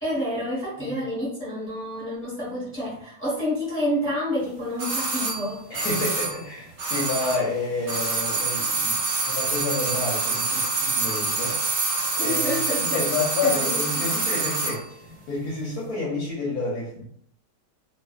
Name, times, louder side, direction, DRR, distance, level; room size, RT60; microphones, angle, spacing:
voice 1, 0.0-5.6 12.2-13.0 13.4-14.1, equal, 10° left, -9 dB, 1.0 m, -29 dB
sound 1, 4.8-7.5 7.8-14.8 15.1-15.2, right 3 dB, 55° right, 0.8 m, -26 dB
voice 2, 5.7-9.0 9.2-11.6 12.2-12.4 12.8-14.9 15.3-17.0, left 3 dB, 70° left, -4 dB, 1.1 m, -29 dB
2.4 x 2.4 x 2.2 m, 0.65 s
omnidirectional pair, 1.8 m